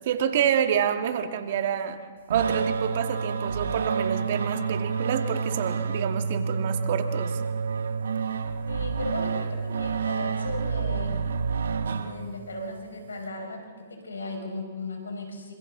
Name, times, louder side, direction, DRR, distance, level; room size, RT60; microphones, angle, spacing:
voice 1, 0.0-2.0 2.3-7.4, right 8 dB, 60° right, 7 dB, 2.0 m, -27 dB
sound 1, 2.3-12.6, right 5 dB, 75° right, 1.3 m, -29 dB
voice 2, 8.7-11.2 11.9-15.5, left 2 dB, 85° left, 2 dB, 5.9 m, -36 dB
28.0 x 26.0 x 4.0 m, 1.5 s
hypercardioid pair, 120°, 0 cm